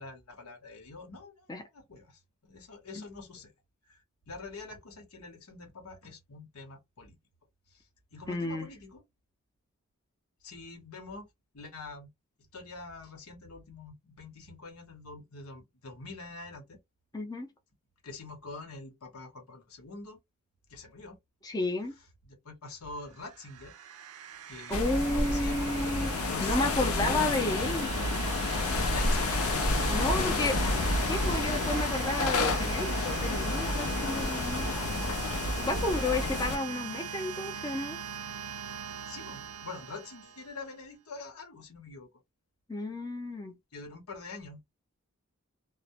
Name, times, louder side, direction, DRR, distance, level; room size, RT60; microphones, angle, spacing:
voice 1, 0.0-3.5 3.9-4.0 4.3-7.2 7.7-7.8 8.1-9.0 10.4-11.3 11.5-12.1 12.5-16.8 18.0-20.2 20.7-21.2 22.3-23.7 24.5-24.8 25.1-27.3 28.9-30.6 39.0-42.1 43.7-44.6, left 3 dB, 90° left, 0.9 m, -45 dB
voice 2, 8.3-8.7 17.1-17.5 21.4-21.9 24.7-27.9 29.9-30.5 31.0-34.7 35.6-38.0 42.7-43.6, left 2 dB, 20° left, 0.5 m, -32 dB
sound 1, 23.1-40.7, right 8 dB, 75° right, 0.3 m, -40 dB
sound 2, 24.7-36.6, left 2 dB, 70° left, 0.5 m, -30 dB
2.2 x 2.0 x 2.8 m
head